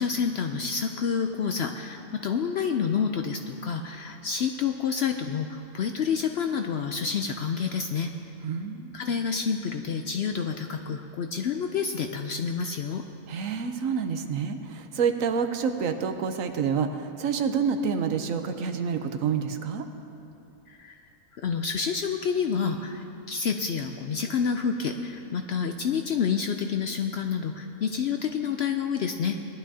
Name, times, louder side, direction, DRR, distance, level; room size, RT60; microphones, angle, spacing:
voice 1, 0.0-8.1 8.9-13.0 20.7-21.0 21.4-29.4, left 6 dB, 65° left, 5 dB, 0.6 m, -28 dB
voice 2, 8.4-8.9 13.3-19.8, right 6 dB, 70° right, 7 dB, 1.1 m, -28 dB
19.5 x 11.5 x 2.8 m, 2.8 s
omnidirectional pair, 1.5 m